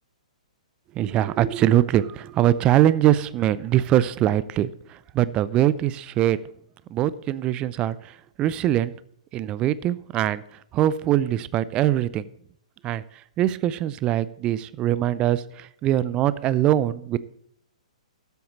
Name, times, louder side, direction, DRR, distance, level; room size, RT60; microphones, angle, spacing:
voice 1, 1.0-4.7 5.1-6.4 6.9-8.0 8.4-8.9 9.3-10.4 10.7-12.2 12.8-13.0 13.4-17.2, right 12 dB, 25° right, 17 dB, 0.5 m, -22 dB
13.0 x 8.1 x 4.2 m, 0.71 s
figure-of-eight pair, 115°, 4 cm